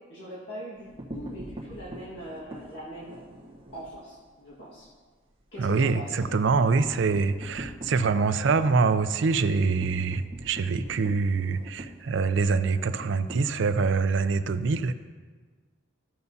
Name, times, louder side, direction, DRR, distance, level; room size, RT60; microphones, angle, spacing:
voice 1, 0.1-3.2 3.7-4.9 5.5-6.3, equal, 60° left, -7 dB, 1.7 m, -41 dB
sound 1, 0.7-4.0 4.3-4.5 4.8-4.9 5.2-14.1, right 1 dB, 25° right, 1.2 m, -43 dB
voice 2, 5.6-14.9, right 4 dB, 65° right, 11 dB, 0.4 m, -25 dB
14.5 x 6.8 x 2.7 m, 1.5 s
head